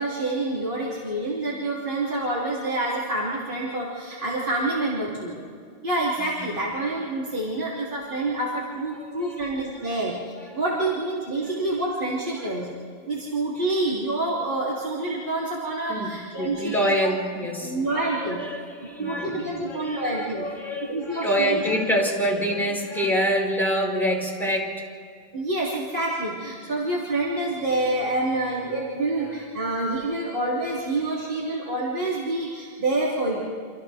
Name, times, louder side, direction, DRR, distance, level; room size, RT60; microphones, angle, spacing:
voice 1, 0.0-5.4 5.8-12.7 13.1-17.1 17.6-18.4 19.0-20.4 20.8-21.6 25.3-33.4, right 2 dB, 55° right, -7 dB, 3.2 m, -27 dB
voice 2, 9.0-9.5 10.5-10.6 12.4-12.7 15.9-24.9 30.2-30.3, equal, ahead, -3 dB, 4.6 m, -27 dB
29.5 x 27.5 x 3.5 m, 2.2 s
omnidirectional pair, 1.1 m